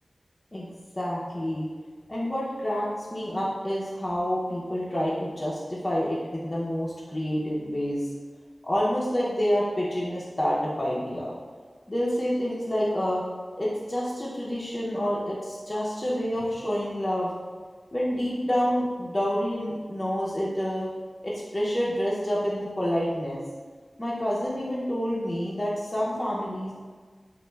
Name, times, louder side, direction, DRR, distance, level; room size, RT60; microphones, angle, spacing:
voice 1, 0.5-1.7 2.1-8.0 8.6-11.4 11.9-13.2 13.6-17.3 17.9-20.9 21.2-23.4 24.0-26.7, equal, 30° left, -6 dB, 0.4 m, -28 dB
3.0 x 2.3 x 2.2 m, 1.5 s
wide cardioid pair, 60°, 0 cm